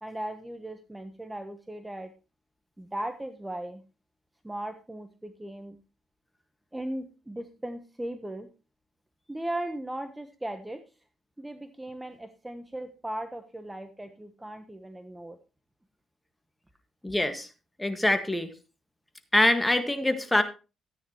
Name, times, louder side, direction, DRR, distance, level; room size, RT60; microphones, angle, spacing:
voice 1, 0.0-2.1 2.8-3.8 4.4-5.8 6.7-8.5 9.3-10.8 11.4-15.4, right 1 dB, 10° right, 8 dB, 1.0 m, -37 dB
voice 2, 17.0-17.5 17.8-18.5 19.3-20.4, left 1 dB, 10° left, 7 dB, 1.7 m, -24 dB
13.5 x 9.4 x 3.0 m, 0.31 s
cardioid pair, 90°, 0 cm